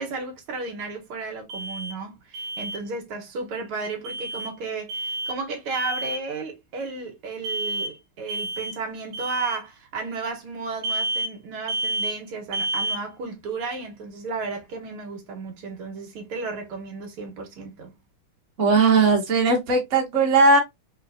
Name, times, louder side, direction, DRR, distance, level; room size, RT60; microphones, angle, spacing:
voice 1, 0.0-17.9, right 4 dB, 85° right, 2.1 m, -33 dB
Alarm, 1.5-1.9 2.3-2.8 4.0-4.5 4.9-5.4 5.7-6.2 7.4-7.9 8.3-8.8 9.1-9.6 10.8-11.3 11.7-12.2 12.5-13.0, right 2 dB, 65° right, 1.5 m, -29 dB
voice 2, 18.6-20.6, right 3 dB, 40° right, 1.5 m, -18 dB
3.9 x 3.7 x 2.5 m
omnidirectional pair, 2.3 m